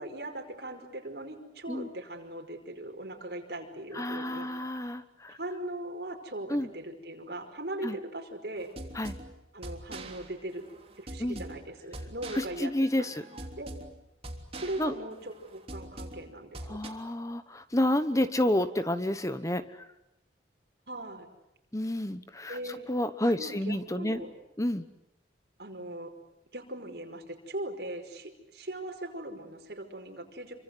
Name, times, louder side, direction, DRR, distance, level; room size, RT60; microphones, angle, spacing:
voice 1, 0.0-4.5 5.4-8.7 9.5-10.6 11.0-13.1 13.6-13.7 14.6-16.8 20.9-21.3 22.5-22.9 23.4-24.3 25.6-26.1 26.5-30.6, right 1 dB, 60° right, 4 dB, 5.2 m, -39 dB
voice 2, 3.9-5.4 6.5-6.7 7.8-8.0 8.9-9.1 11.2-11.4 12.4-13.2 14.8-14.9 16.7-19.6 21.7-24.2 24.6-24.8, left 1 dB, 15° left, 12 dB, 1.1 m, -30 dB
sound 1, 8.6-16.9, right 1 dB, 30° right, 3.3 m, -44 dB
28.0 x 25.5 x 8.0 m, 0.87 s
head